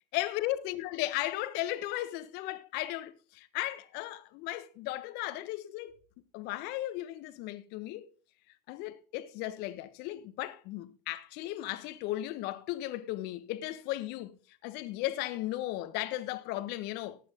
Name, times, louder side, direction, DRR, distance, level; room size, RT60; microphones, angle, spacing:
voice 1, 0.1-6.0 6.3-8.0 8.7-17.2, left 15 dB, 50° left, 1.4 m, -36 dB
15.5 x 10.0 x 3.8 m
hypercardioid pair, 90°, 21 cm